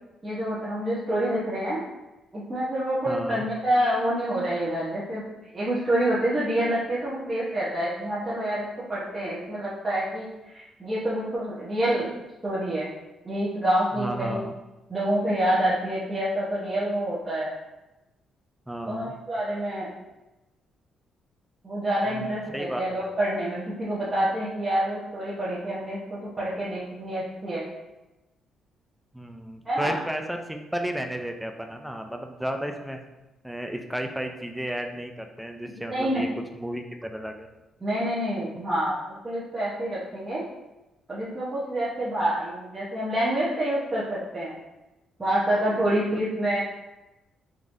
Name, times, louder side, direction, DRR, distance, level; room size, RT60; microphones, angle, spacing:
voice 1, 0.2-1.8 2.3-8.6 8.9-12.1 12.4-12.9 13.2-14.4 14.9-17.5 18.9-19.9 21.6-27.6 29.6-30.0 35.9-36.2 37.8-40.4 41.1-44.5 45.2-46.6, right 1 dB, 20° right, -9 dB, 0.9 m, -27 dB
voice 2, 3.1-3.4 14.0-14.5 18.7-19.1 22.1-23.1 29.1-33.0 33.4-36.3 36.5-37.5, right 1 dB, 5° right, 4 dB, 0.4 m, -33 dB
3.7 x 3.1 x 2.6 m, 1.0 s
cardioid pair, 90°, 0 cm